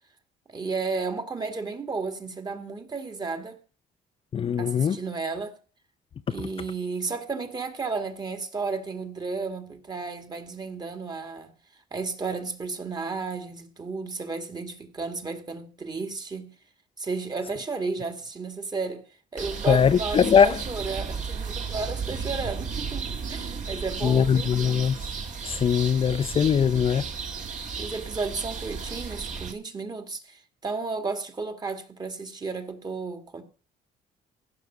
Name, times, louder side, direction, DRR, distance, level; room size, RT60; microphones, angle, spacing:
voice 1, 0.5-3.6 4.6-5.6 6.3-11.5 11.9-16.5 17.0-19.0 19.3-24.5 27.8-33.4, right 4 dB, 25° right, 1.8 m, -33 dB
voice 2, 4.3-5.0 19.7-20.6 24.0-25.0 25.4-27.0, left 7 dB, 35° left, 0.5 m, -21 dB
sound 1, 19.4-29.5, right 5 dB, 45° right, 2.0 m, -34 dB
15.5 x 6.1 x 6.0 m
cardioid pair, 110°, 17 cm